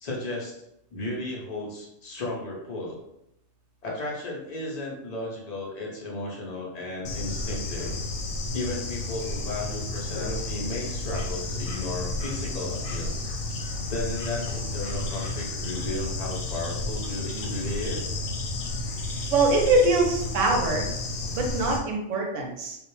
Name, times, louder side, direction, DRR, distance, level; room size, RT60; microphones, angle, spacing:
voice 1, 0.0-0.6 0.9-3.0 3.8-8.0 8.5-13.1 13.9-18.2, left 2 dB, 50° left, -3 dB, 0.5 m, -34 dB
Bird / Insect, 7.0-21.8, left 2 dB, 85° left, 1.0 m, -32 dB
voice 2, 19.3-20.9 21.3-22.8, right 2 dB, 70° right, 1 dB, 1.0 m, -23 dB
2.4 x 2.1 x 3.0 m, 0.80 s
omnidirectional pair, 1.4 m